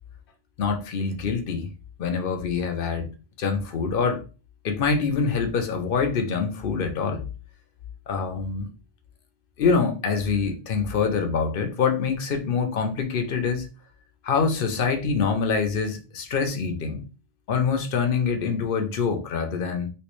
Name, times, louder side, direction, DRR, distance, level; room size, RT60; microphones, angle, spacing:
voice 1, 0.6-1.7 2.0-3.1 3.4-4.2 4.6-7.2 8.1-8.7 9.6-13.7 14.2-17.0 17.5-19.9, left 5 dB, 65° left, 0.8 m, -25 dB
3.2 x 3.0 x 3.0 m
omnidirectional pair, 1.0 m